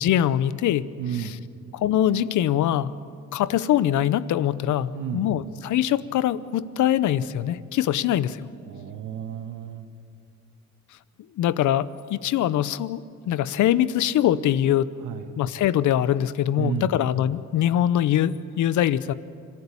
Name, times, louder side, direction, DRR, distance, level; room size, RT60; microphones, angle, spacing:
voice 1, 0.0-0.9 1.2-1.3 1.7-2.9 3.3-8.4 11.4-14.9 15.4-19.1, left 11 dB, 75° left, 17 dB, 0.8 m, -23 dB
voice 2, 1.0-1.5 4.9-5.3 8.7-9.9 15.0-15.4 16.6-17.0, right 9 dB, 85° right, 6 dB, 1.4 m, -32 dB
25.5 x 14.0 x 9.9 m, 2.4 s
cardioid pair, 90°, 30 cm